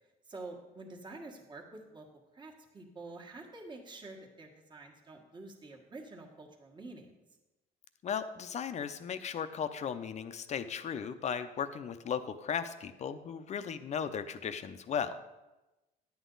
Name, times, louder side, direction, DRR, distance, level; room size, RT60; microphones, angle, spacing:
voice 1, 0.3-2.0 2.3-7.2, right 2 dB, 25° right, 0 dB, 1.6 m, -48 dB
voice 2, 8.0-15.2, left 7 dB, 40° left, 10 dB, 0.6 m, -36 dB
10.0 x 8.2 x 3.9 m, 1.0 s
cardioid pair, 110°, 17 cm